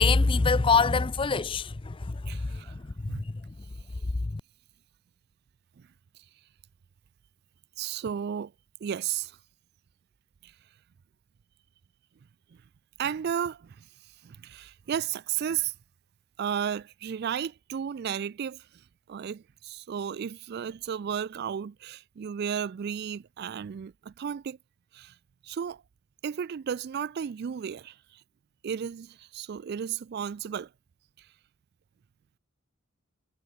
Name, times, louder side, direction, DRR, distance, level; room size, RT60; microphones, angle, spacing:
voice 1, 0.0-3.5 4.2-4.4, left 4 dB, 25° left, 0.5 m, -25 dB
voice 2, 2.3-2.8 3.1-3.2 5.8-5.9 7.8-8.5 8.8-9.4 10.4-10.5 12.5-12.6 13.0-13.9 14.2-15.7 16.4-18.8 19.1-24.6 24.9-25.2 25.4-25.8 26.2-28.2 28.6-30.7 31.2-31.3, right 8 dB, 55° right, 0.3 m, -34 dB
head